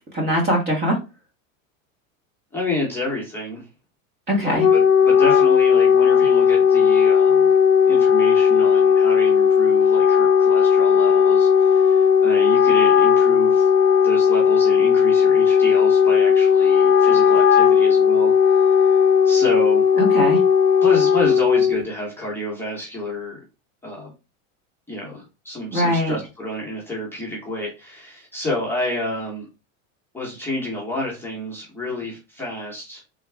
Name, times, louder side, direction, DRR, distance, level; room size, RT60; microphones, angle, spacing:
voice 1, 0.1-1.0 4.3-4.6 20.0-20.4 25.7-26.2, equal, 25° right, 0 dB, 1.1 m, -21 dB
voice 2, 2.5-3.7 4.4-7.5 7.9-13.7 14.0-19.9 20.8-23.4 23.8-24.1 24.9-29.5 30.1-33.2, left 1 dB, 5° left, -4 dB, 1.0 m, -30 dB
Wind instrument woodwind instrument, 4.4-21.8, left 7 dB, 35° left, 0.7 m, -16 dB
3.5 x 2.3 x 3.3 m, 0.29 s
supercardioid pair, 135°, 40 cm